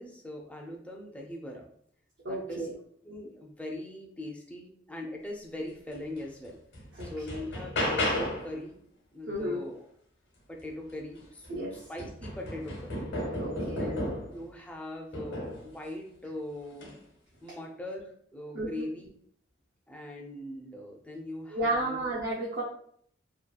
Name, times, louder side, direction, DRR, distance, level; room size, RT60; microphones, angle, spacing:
voice 1, 0.0-1.7 2.3-2.7 3.0-6.6 7.0-8.8 9.1-9.8 10.5-13.1 13.7-16.9 17.4-19.1 19.9-22.0, left 1 dB, 5° left, 0 dB, 0.3 m, -41 dB
voice 2, 2.2-2.7 6.9-7.4 9.3-9.6 11.5-11.8 13.4-13.9 18.5-18.9 21.5-22.6, right 1 dB, 70° right, -5 dB, 0.5 m, -33 dB
sound 1, 6.2-6.3 6.7-8.6 10.9-11.0 11.4-14.4 15.1-15.7 16.7-17.0, left 1 dB, 70° left, 0.8 m, -33 dB
2.8 x 2.3 x 2.2 m, 0.63 s
head